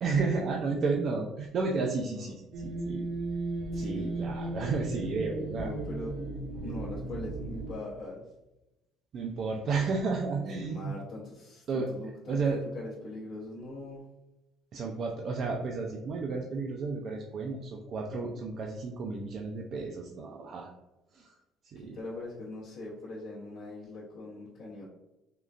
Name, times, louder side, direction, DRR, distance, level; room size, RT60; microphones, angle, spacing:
voice 1, 0.0-3.1 3.8-5.7 9.1-10.9 11.7-11.9 12.3-12.6 14.7-20.7 21.1-21.3 21.7-22.0, right 4 dB, 45° right, 0 dB, 0.3 m, -32 dB
sound 1, 2.5-7.7, right 2 dB, 70° right, 0.7 m, -35 dB
voice 2, 3.7-4.2 5.6-6.1 6.6-8.3 10.4-12.4 12.7-14.0 21.8-24.9, left 2 dB, 60° left, -7 dB, 0.7 m, -42 dB
3.6 x 2.2 x 2.4 m, 0.97 s
cardioid pair, 135°, 0 cm